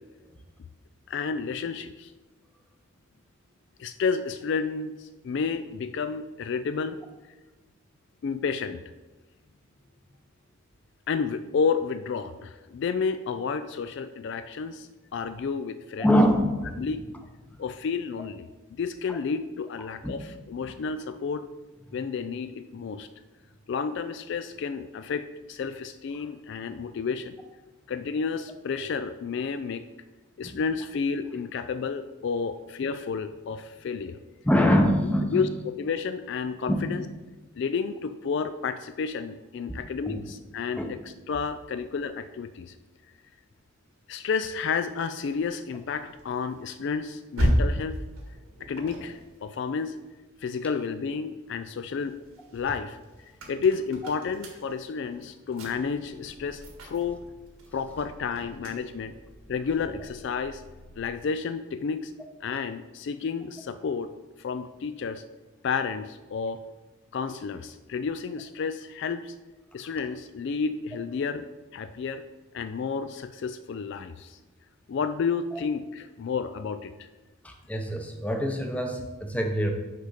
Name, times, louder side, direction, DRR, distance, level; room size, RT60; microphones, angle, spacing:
voice 1, 1.1-2.1 3.8-7.0 8.2-8.8 11.1-16.1 16.8-17.0 17.6-21.5 21.9-23.1 23.7-27.3 27.9-29.9 30.4-34.2 35.3-37.0 37.5-41.0 41.3-42.7 44.1-48.0 48.6-50.0 50.4-52.2 52.5-53.0 53.5-57.2 57.7-59.2 59.5-60.6 61.0-62.1 62.4-64.1 64.4-65.2 65.6-66.6 67.1-69.3 69.7-71.5 71.7-72.2 72.5-74.4 74.9-77.1, left 5 dB, 55° left, 11 dB, 0.3 m, -31 dB
voice 2, 16.0-16.9 17.5-17.6 19.1-19.2 20.0-20.1 20.6-20.8 30.4-30.6 34.4-35.4 36.7-36.8 39.7-39.8 40.0-40.2 40.8-40.9 75.5-75.6 77.4-79.7, equal, 5° left, 3 dB, 0.7 m, -24 dB
sound 1, 44.5-51.0 51.5-61.3, equal, 85° right, 1.7 m, -35 dB
6.6 x 4.9 x 5.7 m, 1.2 s
head